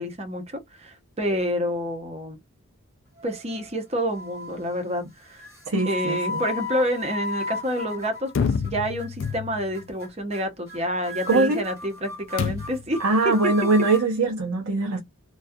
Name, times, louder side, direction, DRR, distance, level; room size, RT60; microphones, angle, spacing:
voice 1, 0.0-2.4 3.2-5.4 5.9-13.0 13.2-13.5, equal, 30° right, 0.7 m, -28 dB
sound 1, 3.2-3.8 4.1-4.6 5.4-8.7 9.0-9.3 9.7-10.1 10.3-10.8 11.0-14.0, left 2 dB, 15° right, 1.0 m, -34 dB
voice 2, 5.7-6.4 11.3-11.6 13.0-15.0, right 3 dB, 85° right, 0.6 m, -22 dB
sound 2, 8.4-9.8 12.4-13.0, left 6 dB, 60° left, 0.3 m, -28 dB
2.3 x 2.3 x 2.5 m
head